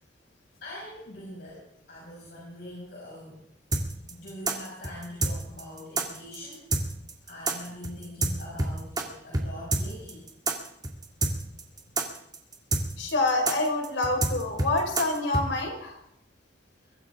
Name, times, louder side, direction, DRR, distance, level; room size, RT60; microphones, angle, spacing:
voice 1, 0.6-3.4 4.1-6.7 7.3-10.2, left 1 dB, 60° left, -5 dB, 6.3 m, -43 dB
sound 1, 3.7-9.0 9.3-9.5 9.7-15.5, right 2 dB, 20° right, 2.1 m, -27 dB
voice 2, 13.0-15.9, left 2 dB, 80° left, 2 dB, 4.6 m, -27 dB
23.0 x 15.0 x 3.6 m, 0.76 s
head